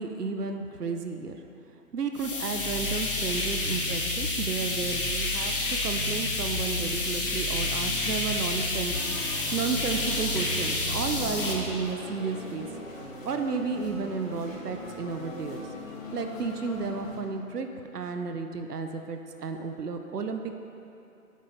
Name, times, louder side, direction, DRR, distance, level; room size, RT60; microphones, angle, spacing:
voice 1, 0.0-1.4 1.9-12.7 13.2-15.6 16.1-17.7 17.9-20.6, right 5 dB, 80° right, 6 dB, 0.7 m, -32 dB
sound 1, 2.2-11.5, left 2 dB, 35° left, 0.8 m, -29 dB
sound 2, 8.9-17.2, left 1 dB, 55° left, 1.4 m, -40 dB
8.3 x 7.6 x 3.1 m, 2.8 s
figure-of-eight pair, 145°, 46 cm